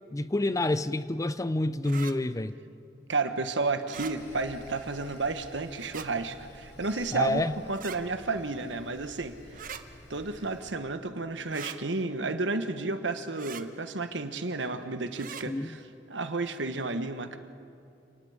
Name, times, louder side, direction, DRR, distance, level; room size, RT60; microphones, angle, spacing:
voice 1, 0.1-2.5 7.1-7.5 15.5-15.7, left 2 dB, 20° left, 0.5 m, -28 dB
sound 1, 1.8-2.1 3.8-4.1 5.8-6.1 7.7-8.0 9.5-9.8 11.5-11.8 13.3-13.6 15.1-15.4, right 8 dB, 50° right, 0.9 m, -41 dB
voice 2, 3.1-9.7 10.1-15.8 16.1-17.4, right 3 dB, 80° right, 1.3 m, -32 dB
Sawing, 3.9-10.7, left 1 dB, 65° left, 6.0 m, -51 dB
28.5 x 19.5 x 5.0 m
head